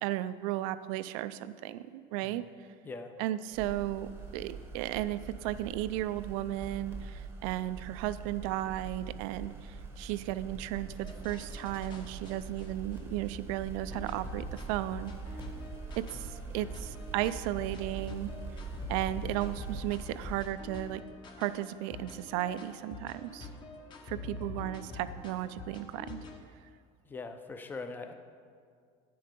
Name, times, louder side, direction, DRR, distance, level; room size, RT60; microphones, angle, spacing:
voice 1, 0.0-2.4 3.2-15.1 16.0-18.3 18.9-21.0 21.4-23.5 24.1-26.2, right 14 dB, 85° right, 14 dB, 0.4 m, -35 dB
sound 1, 3.5-20.5, right 4 dB, 15° right, 0.8 m, -43 dB
sound 2, 11.0-13.3 13.9-26.4, left 3 dB, 25° left, 0.8 m, -46 dB
voice 2, 27.1-28.1, left 3 dB, 10° left, 7 dB, 0.5 m, -42 dB
9.5 x 7.7 x 5.2 m, 2.1 s
cardioid pair, 165°, 17 cm